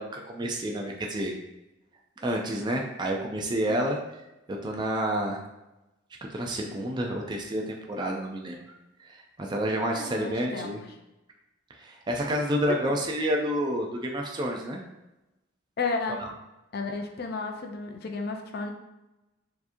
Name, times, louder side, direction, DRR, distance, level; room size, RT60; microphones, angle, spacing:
voice 1, 0.0-1.3 2.2-4.0 4.5-5.4 6.3-8.6 9.0-10.8 11.8-14.8 16.2-16.3, right 1 dB, 20° right, 0 dB, 0.4 m, -29 dB
voice 2, 3.7-4.0 9.9-10.8 12.7-12.8 15.8-16.2 16.7-18.7, left 4 dB, 50° left, 4 dB, 0.5 m, -33 dB
4.5 x 2.8 x 2.6 m, 0.96 s
head